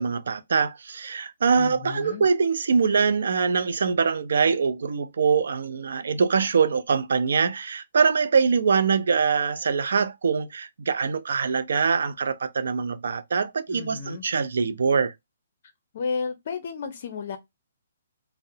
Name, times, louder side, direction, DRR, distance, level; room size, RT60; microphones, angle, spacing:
voice 1, 0.0-15.1, right 5 dB, 70° right, 0.3 m, -23 dB
voice 2, 1.6-2.2 13.7-14.2 15.9-17.4, left 5 dB, 45° left, 0.6 m, -32 dB
2.7 x 2.0 x 2.6 m
hypercardioid pair, 170°, 0 cm